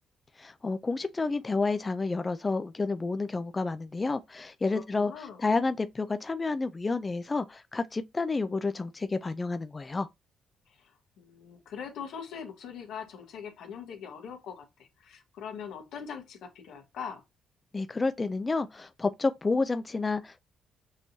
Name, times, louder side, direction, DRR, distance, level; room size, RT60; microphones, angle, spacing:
voice 1, 0.4-10.1 17.7-20.4, left 3 dB, 25° left, 0.3 m, -30 dB
voice 2, 4.7-5.4 10.7-17.2, left 7 dB, 75° left, 1.2 m, -42 dB
6.3 x 3.0 x 2.6 m
cardioid pair, 90°, 0 cm